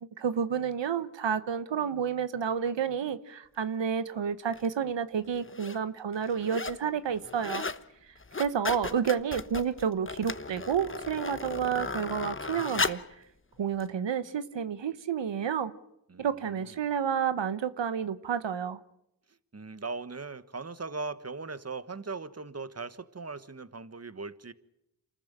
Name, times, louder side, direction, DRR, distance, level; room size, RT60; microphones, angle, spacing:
voice 1, 0.0-7.6 8.1-13.0 13.6-15.7 16.2-18.8, right 7 dB, 85° right, 1.0 m, -30 dB
sound 1, 4.5-4.7 5.4-5.8 6.1-6.8 7.1-7.8 8.2-13.1 13.8-13.9, left 3 dB, 30° left, 1.2 m, -35 dB
voice 2, 19.5-24.5, right 4 dB, 35° right, 1.4 m, -39 dB
28.0 x 14.5 x 9.0 m
cardioid pair, 40°, 43 cm